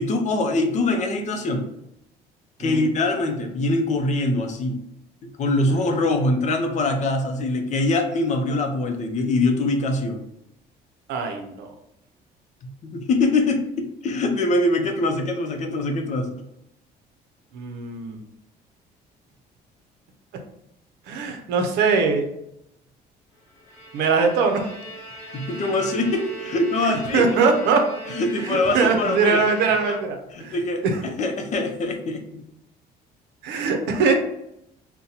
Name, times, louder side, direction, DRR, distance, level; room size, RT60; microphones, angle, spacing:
voice 1, 0.0-1.7 2.6-4.8 5.4-10.3 12.8-16.3 25.3-27.3 28.1-29.4 29.9-30.0 30.3-30.8 31.2-32.4, left 2 dB, 45° left, 4 dB, 0.6 m, -23 dB
voice 2, 11.1-11.7 17.5-18.2 21.1-22.3 23.9-24.7 26.8-27.8 28.3-30.6 30.8-31.0 33.4-34.1, right 4 dB, 85° right, 4 dB, 0.6 m, -22 dB
Bowed string instrument, 23.5-30.5, right 4 dB, 15° left, 1.2 m, -38 dB
2.7 x 2.2 x 3.9 m, 0.80 s
cardioid pair, 110°, 17 cm